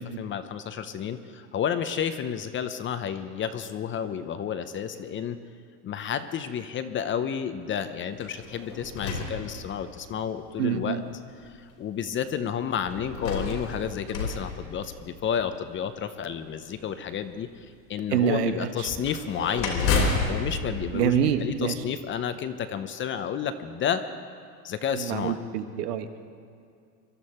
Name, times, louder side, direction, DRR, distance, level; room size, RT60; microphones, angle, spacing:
voice 1, 0.0-5.4 5.8-11.0 11.4-24.0 24.6-25.4, left 8 dB, 25° left, 10 dB, 0.6 m, -31 dB
sound 1, 8.1-10.1 10.9-11.0 12.9-15.4 18.8-21.9, left 3 dB, 80° left, 3.7 m, -31 dB
voice 2, 10.6-11.0 18.1-18.9 20.9-21.7 24.9-26.2, right 8 dB, 80° right, 9 dB, 1.3 m, -26 dB
23.5 x 12.5 x 4.3 m, 2.4 s
supercardioid pair, 120°, 47 cm